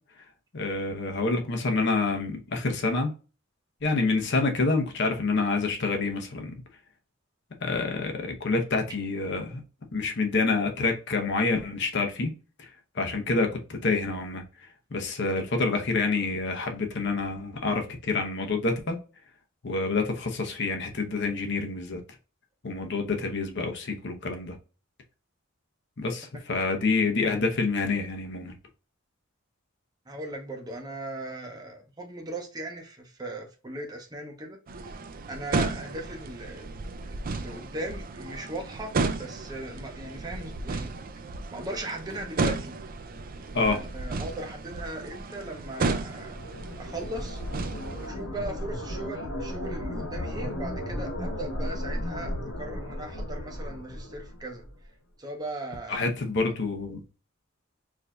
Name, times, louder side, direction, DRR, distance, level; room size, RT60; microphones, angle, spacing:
voice 1, 0.5-3.1 3.8-6.6 7.6-9.6 9.9-12.3 12.6-12.7 12.9-14.4 14.9-19.0 19.6-22.0 22.6-24.6 26.0-28.5 43.5-43.8 55.9-57.0, left 3 dB, 60° left, 0.8 m, -27 dB
voice 2, 30.1-34.6 35.3-36.7 37.0-40.9 41.5-42.7 43.6-46.4 46.8-47.4 48.0-54.6 55.2-56.0, right 1 dB, 20° right, 0.8 m, -38 dB
sound 1, 34.7-48.1, right 3 dB, 45° right, 0.4 m, -33 dB
sound 2, 45.6-54.8, left 1 dB, 80° left, 1.1 m, -35 dB
4.7 x 2.6 x 2.3 m
head